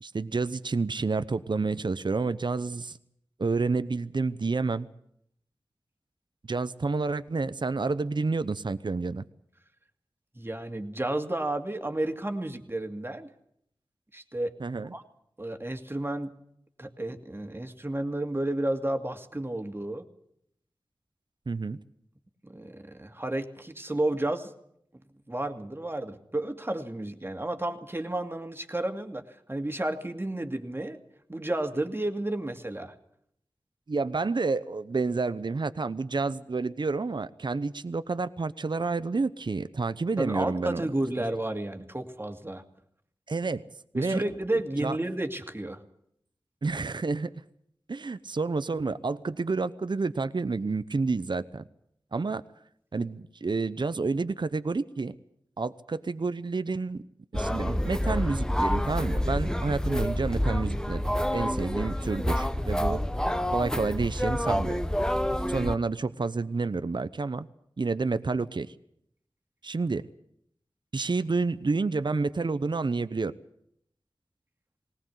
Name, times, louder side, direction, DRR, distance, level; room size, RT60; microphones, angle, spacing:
voice 1, 0.0-3.0 3.4-4.9 6.5-9.2 14.6-14.9 21.5-21.8 33.9-40.8 43.3-43.6 43.9-44.2 44.8-45.0 46.6-47.3 47.9-51.6 52.1-52.4 52.9-55.2 55.6-57.0 57.3-61.0 61.3-63.0 63.5-64.8 65.5-67.5 67.8-68.7 69.6-70.0 70.9-73.3, right 3 dB, 55° right, 13 dB, 0.8 m, -29 dB
voice 2, 10.3-13.3 14.1-14.5 14.9-15.0 15.4-16.3 16.8-20.0 22.4-24.5 25.3-29.2 29.5-31.0 31.3-32.9 40.2-42.6 43.9-45.8, right 1 dB, 25° right, 6 dB, 2.4 m, -31 dB
sound 1, 57.3-65.8, equal, 5° left, 1.1 m, -28 dB
19.5 x 19.0 x 8.2 m, 0.71 s
cardioid pair, 45°, 9 cm